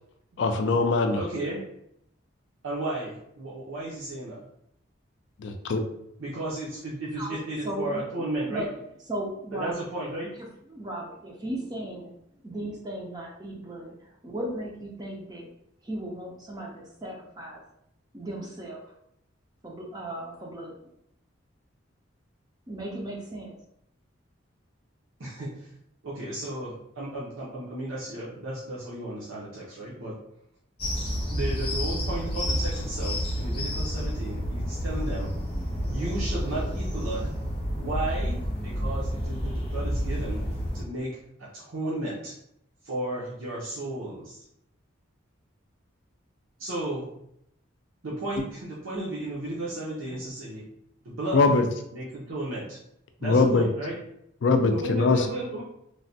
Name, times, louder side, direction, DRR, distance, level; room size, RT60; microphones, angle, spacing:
voice 1, 0.4-1.2 5.4-5.8 51.3-51.6 53.2-53.7 54.4-55.2, left 3 dB, 60° left, 6 dB, 0.3 m, -22 dB
voice 2, 1.2-1.6 2.6-4.4 6.2-8.7 9.5-10.3 25.2-25.7 26.0-30.2 31.3-35.3 35.9-37.3 37.8-40.5 40.7-42.3 42.8-44.4 46.6-47.1 48.0-50.6 51.0-51.6 51.9-52.8 53.2-54.0 54.7-55.6, right 1 dB, 80° right, -7 dB, 0.7 m, -34 dB
voice 3, 7.6-8.0 8.5-8.7 9.1-9.7 10.4-12.1 12.4-15.5 15.8-17.6 18.1-18.8 19.6-20.7 22.7-23.6, right 1 dB, 20° right, -2 dB, 0.4 m, -36 dB
sound 1, 30.8-40.8, equal, 30° left, 0.8 m, -30 dB
3.2 x 2.2 x 2.6 m, 0.76 s
head